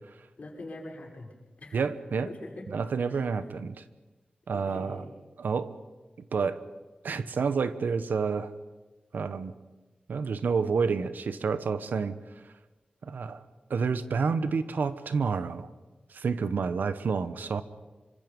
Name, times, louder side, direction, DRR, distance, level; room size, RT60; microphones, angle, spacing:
voice 1, 0.4-1.3 1.6-1.8 2.2-2.7 3.1-3.2 4.5-5.1, left 2 dB, 50° left, -2 dB, 6.5 m, -43 dB
voice 2, 1.7-2.3 2.7-3.7 4.5-5.0 5.4-5.7 6.3-6.6 7.0-8.5 9.1-9.5 10.1-12.1 13.0-13.4 13.7-15.7 16.1-17.6, right 5 dB, 85° right, 12 dB, 1.1 m, -29 dB
27.0 x 25.0 x 5.3 m, 1.2 s
wide cardioid pair, 145°, 3 cm